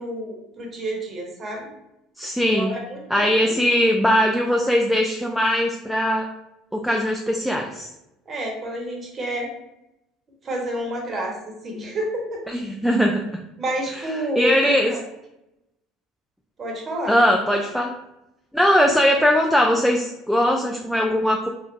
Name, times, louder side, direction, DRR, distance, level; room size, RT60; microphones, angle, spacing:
voice 1, 0.0-1.7 2.5-3.3 8.3-9.5 10.4-12.4 13.6-15.0 16.6-17.1, right 1 dB, 35° right, -1 dB, 0.9 m, -29 dB
voice 2, 2.2-2.8 3.1-6.3 6.7-7.9 12.5-13.4 13.9-14.0 14.4-14.9 17.1-17.9 18.5-21.5, equal, ahead, 0 dB, 0.4 m, -20 dB
3.1 x 2.3 x 2.5 m, 0.88 s
hypercardioid pair, 80°, 0 cm